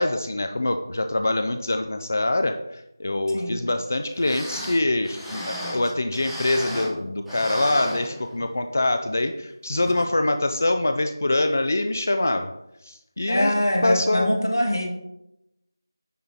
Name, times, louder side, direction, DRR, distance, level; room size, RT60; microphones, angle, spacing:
voice 1, 0.0-12.5 12.8-13.5 13.8-14.3, left 2 dB, 40° left, 7 dB, 0.5 m, -24 dB
sound 1, 3.9-7.0 7.3-8.6 9.0-9.1 9.8-10.0 10.5-10.6, equal, ahead, 0.6 m, -34 dB
voice 2, 13.3-14.9, left 1 dB, 75° left, 2 dB, 1.7 m, -23 dB
9.2 x 3.9 x 4.2 m, 0.86 s
figure-of-eight pair, 170°, 2 cm